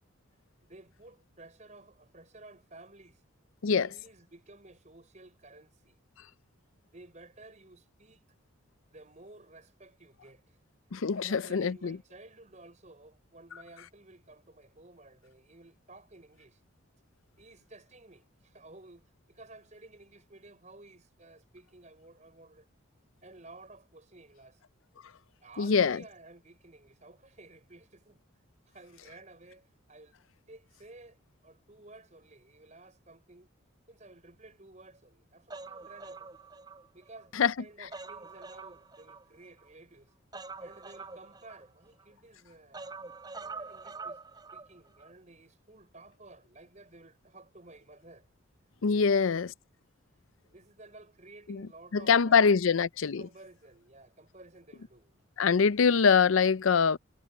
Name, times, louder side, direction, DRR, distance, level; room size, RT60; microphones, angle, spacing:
voice 1, 0.6-3.2 3.8-6.0 6.8-8.2 8.9-10.6 11.1-16.6 17.4-22.7 23.2-24.6 25.4-28.2 28.7-30.2 30.5-33.5 33.9-36.3 36.9-40.1 40.6-42.9 43.4-44.2 44.5-48.3 49.0-49.3 50.4-52.5 53.1-55.2, right 2 dB, 35° right, 6.4 m, -54 dB
voice 2, 10.9-12.0 25.6-26.0 37.4-37.5 48.8-49.5 51.5-51.7 51.9-53.3 55.4-57.0, left 6 dB, 80° left, 0.5 m, -24 dB
Human voice, 35.5-37.3 37.7-39.7 40.3-42.1 42.7-44.7 45.0-45.1, right 4 dB, 20° right, 4.3 m, -45 dB
head